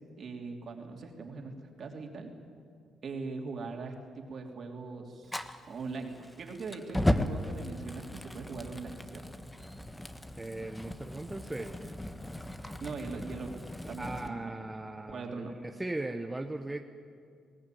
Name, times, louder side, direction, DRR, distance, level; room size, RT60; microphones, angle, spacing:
voice 1, 0.2-2.3 3.0-5.4 5.7-9.2 12.8-14.5 15.1-15.6, right 4 dB, 55° right, 2 dB, 3.2 m, -41 dB
Fire, 5.3-14.3, left 1 dB, 10° left, 1.1 m, -36 dB
voice 2, 10.4-12.0 14.0-16.8, right 2 dB, 15° right, 5 dB, 1.0 m, -38 dB
20.0 x 18.0 x 9.3 m, 2.2 s
cardioid pair, 90°, 0 cm